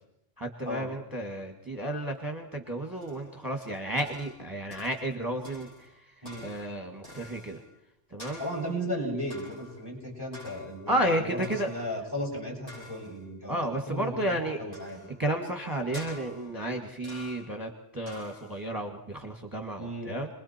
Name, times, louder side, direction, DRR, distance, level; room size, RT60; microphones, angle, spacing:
voice 1, 0.4-6.1 6.4-7.6 8.1-8.4 10.9-11.7 13.5-14.6 15.2-20.3, right 1 dB, 15° right, 3 dB, 1.9 m, -32 dB
sound 1, 2.9-4.4 4.7-5.2 5.4-7.7 8.2-8.8 9.3-9.9 10.3-10.9 11.4-12.0 12.7-13.3 14.7-15.2 15.9-16.6 17.0-17.6 18.1-18.7, left 1 dB, 90° left, 8.4 m, -49 dB
voice 2, 8.4-13.6 13.9-15.0 19.8-20.1, equal, 20° left, -2 dB, 7.2 m, -35 dB
29.5 x 21.5 x 4.4 m, 0.80 s
omnidirectional pair, 1.2 m